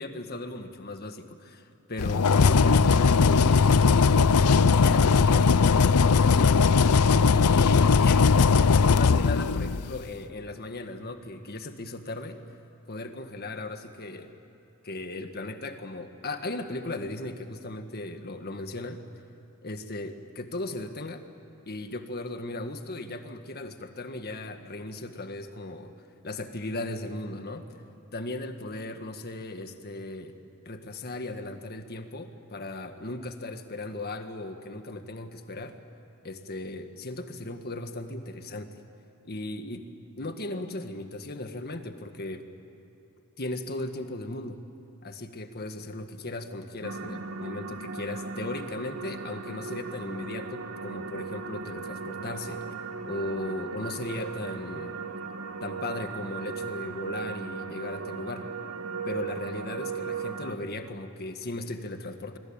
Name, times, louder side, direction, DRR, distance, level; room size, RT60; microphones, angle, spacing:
voice 1, 0.0-3.8 4.3-6.6 7.3-12.4 12.9-14.3 14.8-19.0 19.6-21.2 21.7-25.9 26.2-27.7 28.1-30.3 30.7-35.8 36.2-38.7 39.2-39.9 40.2-42.4 43.4-44.6 45.0-52.6 53.1-55.0 55.6-58.5 59.1-62.4, left 2 dB, 45° left, 7 dB, 1.8 m, -37 dB
sound 1, 2.0-10.0, left 5 dB, 90° left, 0.6 m, -19 dB
sound 2, 46.8-60.6, right 5 dB, 70° right, 1.7 m, -37 dB
24.5 x 24.0 x 8.9 m, 2.9 s
head